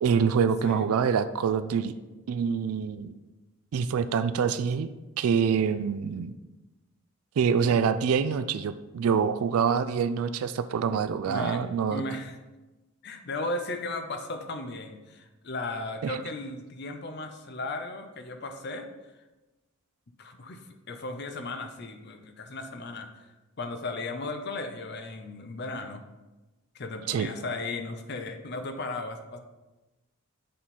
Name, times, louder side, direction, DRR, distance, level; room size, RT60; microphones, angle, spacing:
voice 1, 0.0-1.9 2.3-3.1 3.7-4.9 5.2-6.3 7.4-12.0 16.0-16.2 27.1-27.3, right 6 dB, 85° right, 12 dB, 0.3 m, -25 dB
voice 2, 11.2-11.6 11.9-12.4 13.0-18.9 20.2-26.0 26.7-29.4, left 2 dB, 50° left, 6 dB, 0.6 m, -36 dB
8.4 x 3.7 x 4.2 m, 1.1 s
head